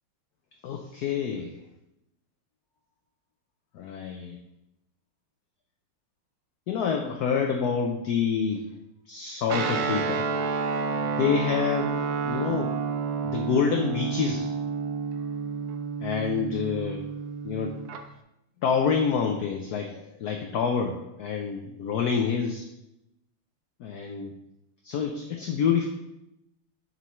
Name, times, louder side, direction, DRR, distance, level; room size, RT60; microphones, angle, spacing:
voice 1, 0.6-1.5 3.7-4.4 6.7-8.7 9.1-10.3 10.9-12.0 12.2-12.7 13.2-14.5 16.0-17.0 17.4-17.8 18.6-22.6 23.8-24.4 24.8-25.9, left 6 dB, 70° left, 3 dB, 0.9 m, -27 dB
Guitar, 9.5-18.0, right 5 dB, 75° right, 0.9 m, -30 dB
6.8 x 5.5 x 3.0 m, 0.85 s
omnidirectional pair, 2.3 m